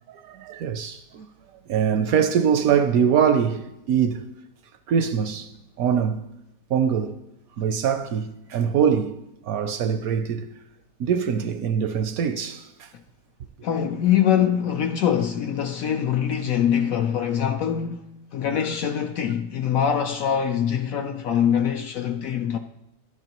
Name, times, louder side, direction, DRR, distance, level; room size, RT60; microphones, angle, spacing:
voice 1, 0.1-1.3 1.7-4.3 4.9-5.5 5.8-6.3 6.7-7.2 7.6-9.2 9.4-10.5 11.0-12.9, right 7 dB, 70° right, 0.9 m, -23 dB
voice 2, 13.6-22.6, left 9 dB, 70° left, 0.8 m, -23 dB
12.0 x 11.0 x 3.0 m
omnidirectional pair, 1.8 m